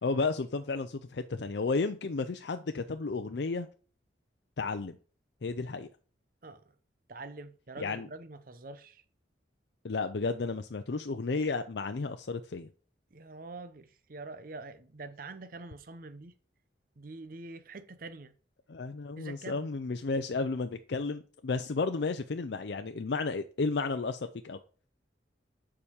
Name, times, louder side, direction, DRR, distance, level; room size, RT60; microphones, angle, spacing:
voice 1, 0.0-3.7 4.6-5.0 5.4-5.9 7.8-8.1 9.8-12.7 18.7-24.6, left 3 dB, 65° left, 0.5 m, -32 dB
voice 2, 7.1-9.0 13.1-16.3 17.0-18.3 19.2-19.7, right 3 dB, 50° right, 0.7 m, -45 dB
6.9 x 5.0 x 7.1 m
head